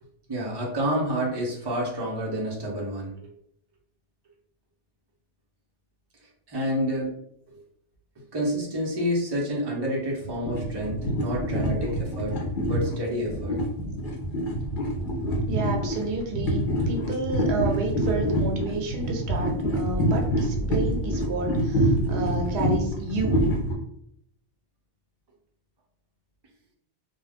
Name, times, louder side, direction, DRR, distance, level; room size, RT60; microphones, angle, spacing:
voice 1, 0.3-3.3 6.2-7.1 7.5-7.6 8.3-12.4 12.7-13.6, equal, 30° right, -2 dB, 0.6 m, -29 dB
sound 1, 10.2-23.7, equal, 55° left, 0.8 m, -26 dB
voice 2, 15.4-23.4, right 3 dB, 85° right, 2 dB, 0.9 m, -30 dB
2.3 x 2.2 x 3.3 m, 0.73 s
omnidirectional pair, 1.1 m